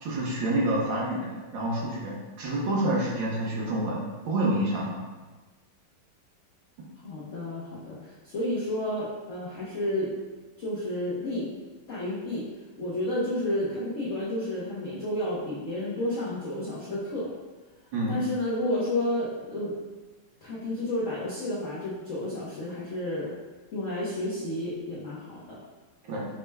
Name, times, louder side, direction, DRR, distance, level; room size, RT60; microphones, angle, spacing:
voice 1, 0.0-5.0 17.9-18.2 26.0-26.3, right 1 dB, 70° right, -3 dB, 1.5 m, -28 dB
voice 2, 7.0-10.1 10.6-11.5 11.9-12.5 12.8-17.3 18.1-19.7 20.4-23.3 23.7-25.6, left 1 dB, 90° left, -7 dB, 0.6 m, -31 dB
5.6 x 2.1 x 3.3 m, 1.2 s
omnidirectional pair, 2.4 m